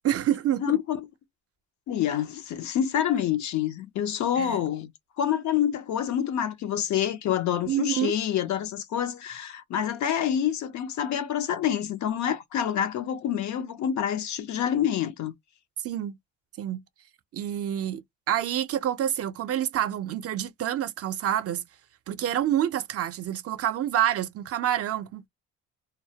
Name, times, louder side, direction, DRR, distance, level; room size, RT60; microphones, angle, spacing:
voice 1, 0.0-0.8 4.4-4.7 7.7-8.1 15.8-16.2 16.6-16.8 17.3-21.6 22.1-25.3, right 11 dB, 50° right, 0.5 m, -27 dB
voice 2, 0.6-1.0 1.9-4.9 5.2-15.3, left 9 dB, 70° left, 0.6 m, -27 dB
2.2 x 2.1 x 2.7 m
cardioid pair, 90°, 30 cm